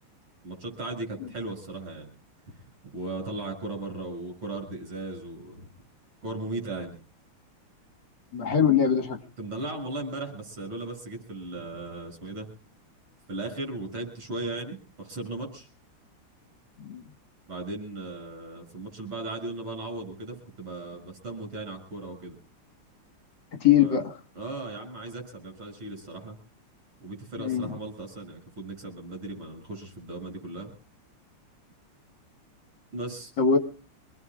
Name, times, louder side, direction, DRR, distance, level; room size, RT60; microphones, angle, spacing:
voice 1, 0.4-2.1 2.5-2.6 2.9-5.6 6.2-7.0 9.4-12.5 13.3-15.7 17.5-22.4 23.8-24.0 24.3-26.4 27.0-30.7 32.9-33.3, right 2 dB, 80° right, 4 dB, 7.9 m, -37 dB
voice 2, 8.3-9.2 16.8-17.0 23.5-24.2 27.4-27.7 33.4-33.6, left 8 dB, 55° left, 5 dB, 2.3 m, -22 dB
26.5 x 19.0 x 2.5 m, 0.39 s
omnidirectional pair, 2.4 m